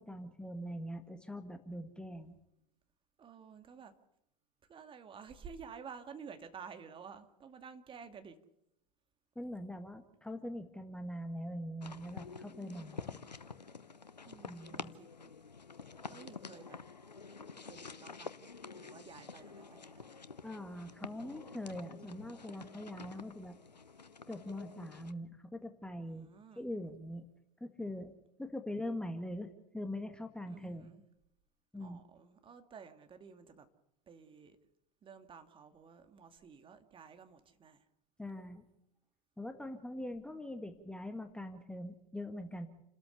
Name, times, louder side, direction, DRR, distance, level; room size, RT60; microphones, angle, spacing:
voice 1, 0.0-2.4 9.4-13.0 14.5-14.9 20.4-23.6 24.3-26.3 26.6-27.3 27.6-28.1 28.4-30.9 31.7-32.0 38.2-38.7 39.4-42.7, left 1 dB, 5° left, 1.7 m, -42 dB
voice 2, 3.2-3.9 4.7-8.4 12.5-13.2 14.3-15.1 16.1-16.8 17.7-18.3 18.7-20.0 26.0-26.7 30.5-31.0 31.8-33.7 34.1-34.6 35.0-37.8, right 6 dB, 25° right, 2.3 m, -52 dB
sound 1, 11.8-25.1, left 4 dB, 85° left, 1.0 m, -49 dB
30.0 x 13.5 x 6.9 m
figure-of-eight pair, 90°, 21 cm